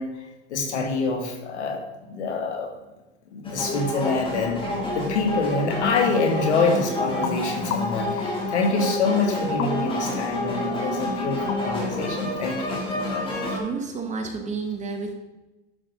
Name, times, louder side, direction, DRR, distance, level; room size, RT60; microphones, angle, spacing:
voice 1, 0.0-2.7 3.3-12.9, left 3 dB, 85° left, 2 dB, 2.3 m, -26 dB
sound 1, 3.4-13.6, left 1 dB, 15° left, 2.8 m, -29 dB
sound 2, 5.8-13.4, left 3 dB, 35° left, 1.1 m, -33 dB
voice 2, 13.3-15.1, right 4 dB, 20° right, 4 dB, 1.4 m, -31 dB
11.5 x 6.3 x 3.8 m, 1.1 s
hypercardioid pair, 125°, 33 cm